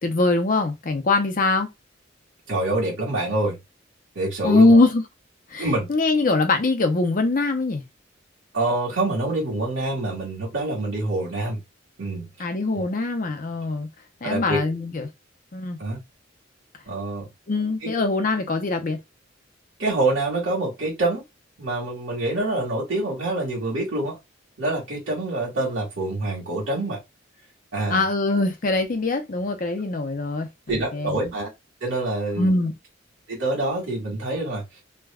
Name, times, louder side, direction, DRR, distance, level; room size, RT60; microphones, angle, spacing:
voice 1, 0.0-1.7 4.4-5.0 5.5-7.8 12.4-13.9 14.2-15.1 15.5-15.8 17.5-19.0 27.9-31.2 32.4-32.7, left 2 dB, 45° left, 0.6 m, -22 dB
voice 2, 2.5-3.6 4.1-4.8 5.6-5.9 8.5-11.6 12.0-12.3 12.7-12.8 14.2-14.6 15.8-16.0 16.9-17.3 17.8-17.9 19.8-21.2 21.6-24.2 24.6-27.0 27.7-28.0 30.7-31.5 31.8-32.5 33.3-34.8, right 2 dB, 80° right, 1.6 m, -26 dB
3.3 x 2.2 x 2.3 m
head